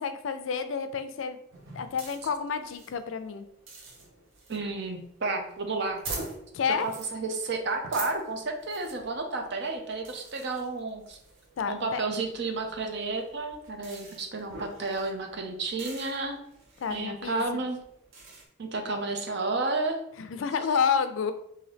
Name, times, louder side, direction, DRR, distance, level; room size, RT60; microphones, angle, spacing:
voice 1, 0.0-1.4 1.7-3.5 6.5-6.9 11.6-12.0 16.8-17.5 20.3-21.3, left 6 dB, 90° left, 10 dB, 0.4 m, -29 dB
sound 1, 1.5-18.4, right 3 dB, 85° right, 0.9 m, -46 dB
voice 2, 4.5-6.0 6.8-11.2 11.7-16.4 16.9-17.8 18.6-20.0, right 3 dB, 65° right, 4 dB, 0.6 m, -31 dB
3.8 x 2.6 x 3.3 m, 0.74 s
head